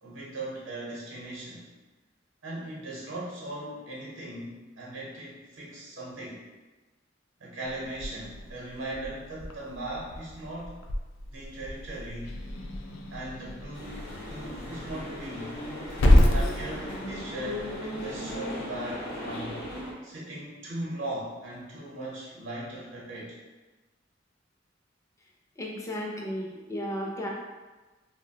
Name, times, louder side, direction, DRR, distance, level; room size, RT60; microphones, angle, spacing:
voice 1, 0.0-1.7 2.4-6.4 7.4-10.8 11.3-12.4 13.1-14.0 14.3-15.6 16.3-19.7 20.0-23.4, right 1 dB, 80° right, -5 dB, 0.7 m, -38 dB
Growling / Hiss, 7.6-18.3, left 1 dB, 85° left, 0.3 m, -29 dB
sound 1, 13.7-19.9, left 1 dB, 55° left, 0.7 m, -37 dB
voice 2, 25.6-27.3, equal, 15° left, -2 dB, 0.4 m, -34 dB
2.7 x 2.0 x 2.7 m, 1.2 s
head